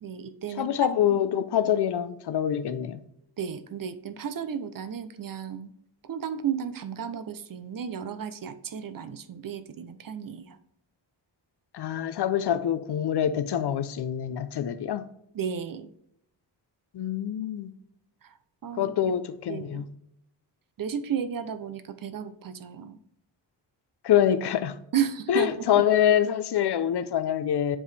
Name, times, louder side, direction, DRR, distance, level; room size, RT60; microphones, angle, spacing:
voice 1, 0.0-0.7 3.4-5.7 6.0-10.6 15.3-15.9 18.2-18.4 18.6-19.1 19.5-19.8 20.8-23.0 24.9-25.8, right 8 dB, 50° right, 0.6 m, -33 dB
voice 2, 0.6-3.0 11.7-15.0 16.9-17.7 18.8-19.9 24.0-24.8 25.3-27.8, left 10 dB, 65° left, 0.6 m, -25 dB
7.6 x 4.8 x 3.3 m
wide cardioid pair, 105°, 44 cm